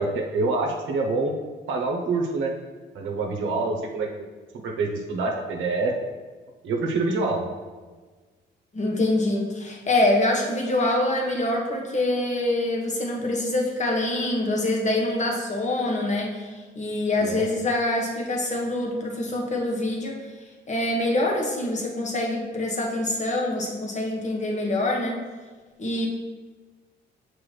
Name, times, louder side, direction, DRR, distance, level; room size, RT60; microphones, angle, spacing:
voice 1, 0.0-1.3 1.7-2.5 2.9-4.3 4.6-5.9 6.6-7.4 17.2-17.4, right 3 dB, 75° right, 0 dB, 0.9 m, -26 dB
voice 2, 8.7-20.2 20.7-25.2 25.8-26.1, left 1 dB, 35° left, 0 dB, 1.3 m, -25 dB
6.2 x 4.7 x 3.2 m, 1.4 s
cardioid pair, 90°, 20 cm